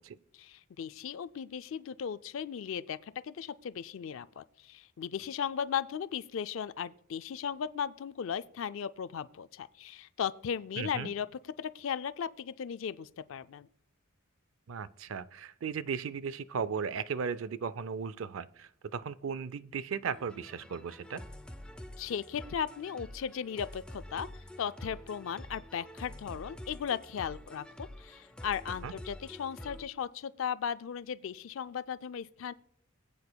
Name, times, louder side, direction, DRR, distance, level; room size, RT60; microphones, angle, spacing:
voice 1, 0.3-11.3 11.6-13.7 22.0-24.3 24.6-32.5, left 7 dB, 65° left, 14 dB, 0.4 m, -36 dB
voice 2, 10.8-11.1 14.7-21.2 28.8-28.9, right 6 dB, 65° right, 17 dB, 0.4 m, -36 dB
sound 1, 20.1-29.9, left 1 dB, 5° left, 0.5 m, -47 dB
21.0 x 8.6 x 2.2 m, 0.68 s
head